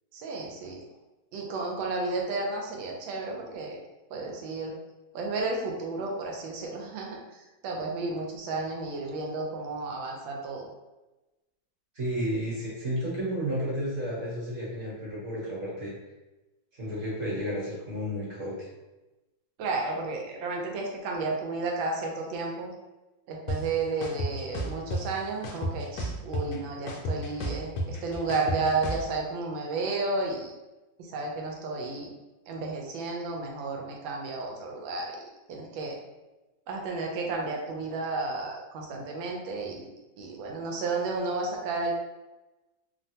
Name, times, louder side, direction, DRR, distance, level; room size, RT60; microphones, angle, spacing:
voice 1, 0.1-0.8 1.3-3.8 4.1-4.7 5.1-7.2 7.6-10.7 19.6-22.7 23.3-30.5 31.1-32.1 32.5-35.2 35.5-36.0 36.7-41.9, right 3 dB, 90° right, 0 dB, 1.4 m, -32 dB
voice 2, 11.9-15.9 16.7-18.5, equal, 45° right, -8 dB, 1.1 m, -32 dB
sound 1, 23.5-23.6 24.0-25.0 25.4-26.6 26.9-29.0, equal, 70° left, 1.1 m, -31 dB
3.3 x 2.1 x 2.7 m, 1.1 s
omnidirectional pair, 2.1 m